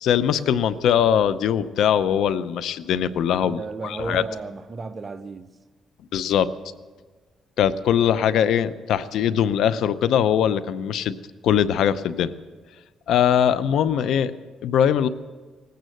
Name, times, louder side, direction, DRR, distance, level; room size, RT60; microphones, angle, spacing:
voice 1, 0.0-4.2 6.1-6.5 7.6-11.1 11.4-12.3 13.1-14.3 14.6-15.1, left 9 dB, 80° left, 0.6 m, -21 dB
voice 2, 3.4-5.5, right 3 dB, 35° right, 0.8 m, -34 dB
19.5 x 9.4 x 7.8 m
cardioid pair, 90°, 0 cm